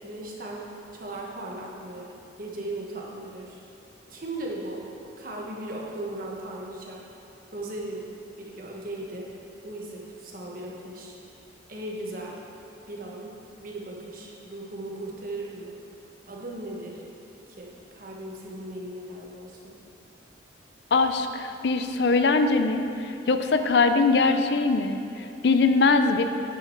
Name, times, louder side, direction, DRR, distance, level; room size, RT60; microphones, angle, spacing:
voice 1, 0.0-3.6 4.1-4.8 5.2-7.0 7.5-8.0 8.4-9.3 9.6-11.2 11.7-12.4 12.9-15.8 16.3-17.0 17.5-19.8, right 1 dB, 50° right, -2 dB, 1.3 m, -37 dB
voice 2, 20.9-26.2, left 3 dB, 65° left, 8 dB, 0.5 m, -22 dB
9.4 x 6.3 x 4.5 m, 2.9 s
head